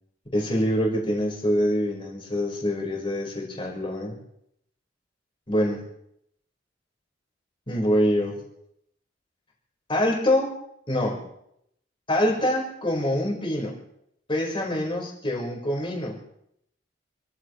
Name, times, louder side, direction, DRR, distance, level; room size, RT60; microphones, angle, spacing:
voice 1, 0.3-4.2 5.5-5.8 7.7-8.4 9.9-10.5 10.9-11.2 12.1-13.8 14.3-16.2, equal, 30° left, -1 dB, 4.8 m, -25 dB
29.5 x 14.5 x 3.2 m, 0.75 s
head